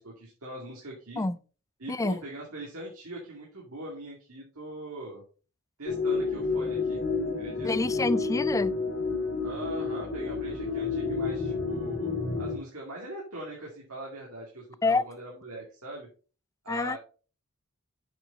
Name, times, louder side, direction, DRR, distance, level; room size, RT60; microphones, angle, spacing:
voice 1, 0.0-1.2 1.8-5.2 5.8-7.0 7.4-7.7 9.4-12.1 12.4-16.1 16.6-17.0, right 1 dB, 70° right, 2.4 m, -41 dB
voice 2, 1.9-2.2 7.6-8.8 14.8-15.0 16.7-17.0, left 3 dB, 15° left, 0.3 m, -27 dB
sound 1, 5.9-12.6, left 4 dB, 50° left, 2.6 m, -30 dB
7.8 x 6.7 x 3.9 m
head